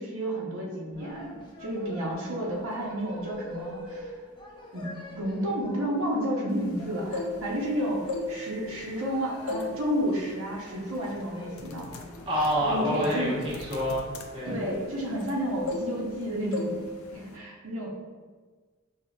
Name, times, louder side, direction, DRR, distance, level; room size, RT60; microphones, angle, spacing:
voice 1, 0.0-4.1 4.7-11.9 12.6-13.4 14.5-16.8 17.1-17.9, equal, 75° right, -4 dB, 0.8 m, -31 dB
sound 1, 0.9-16.9, left 1 dB, 20° left, 0.6 m, -47 dB
sound 2, 6.9-7.7 8.0-9.1 9.5-9.8 10.2-10.4 11.0-11.2 11.5-15.4 15.7-16.2 16.5-16.8 17.1-17.4, left 3 dB, 85° left, 0.4 m, -35 dB
voice 2, 12.3-14.0 14.3-14.7, equal, 25° right, -6 dB, 0.9 m, -27 dB
5.0 x 2.7 x 2.3 m, 1.4 s
head